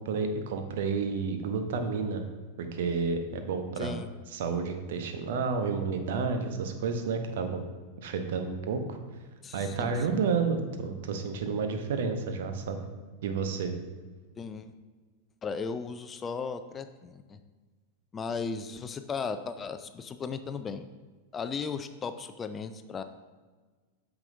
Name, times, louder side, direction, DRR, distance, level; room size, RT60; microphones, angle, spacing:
voice 1, 0.0-2.2 2.6-4.0 4.3-7.6 8.0-9.0 9.5-12.8 13.2-13.7, right 5 dB, 55° right, 6 dB, 0.8 m, -30 dB
voice 2, 3.8-4.1 9.4-10.2 14.4-14.7 15.4-17.4 18.1-20.8 21.3-23.0, left 5 dB, 20° left, 10 dB, 0.4 m, -36 dB
8.8 x 5.9 x 2.6 m, 1.4 s
figure-of-eight pair, 90°, 0 cm